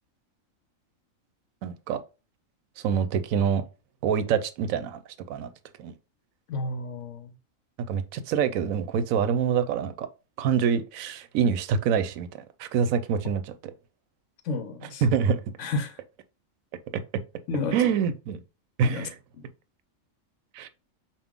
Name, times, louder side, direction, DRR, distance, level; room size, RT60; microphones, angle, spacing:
voice 1, 1.6-2.0 2.8-3.6 4.0-5.0 5.3-5.5 5.8-5.9 7.9-10.1 10.4-12.3 12.6-13.5 15.0-15.4 17.7-18.4 18.8-19.1 20.5-20.7, right 7 dB, 85° right, 1.0 m, -25 dB
voice 2, 6.5-7.3 14.4-15.0 15.6-16.0 17.5-17.9 18.8-19.1 19.3-19.5, left 3 dB, 70° left, 1.0 m, -31 dB
5.3 x 2.4 x 3.5 m
omnidirectional pair, 1.4 m